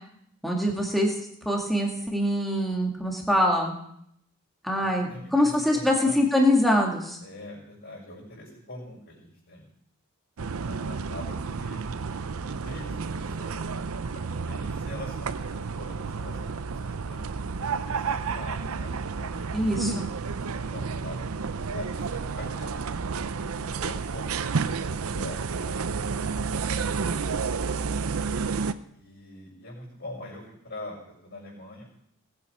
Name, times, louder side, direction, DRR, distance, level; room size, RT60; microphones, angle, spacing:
voice 1, 0.4-1.1 1.4-3.7 4.6-7.2 19.5-20.1, left 1 dB, ahead, -1 dB, 2.0 m, -24 dB
voice 2, 4.8-6.2 7.2-9.6 10.4-11.8 12.6-13.6 14.3-17.3 17.7-19.5 20.5-23.0 23.5-25.8 26.5-28.1 28.9-31.9, left 1 dB, 55° left, -7 dB, 6.1 m, -44 dB
sound 1, 10.4-28.7, right 5 dB, 80° right, 0.6 m, -31 dB
19.5 x 8.5 x 4.9 m, 0.73 s
head